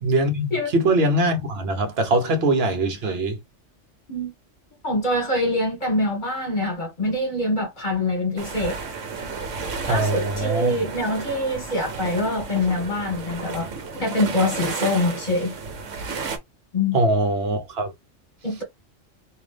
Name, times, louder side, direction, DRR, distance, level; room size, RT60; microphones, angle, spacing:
voice 1, 0.0-3.4 9.9-10.7 16.9-17.9, right 1 dB, 55° right, 1.1 m, -22 dB
voice 2, 4.8-8.8 9.9-13.7 14.0-15.6 16.7-17.0 18.4-18.6, left 1 dB, 40° left, 1.9 m, -24 dB
sound 1, 8.4-16.4, right 5 dB, 75° right, 1.2 m, -32 dB
3.8 x 2.7 x 3.3 m
omnidirectional pair, 1.3 m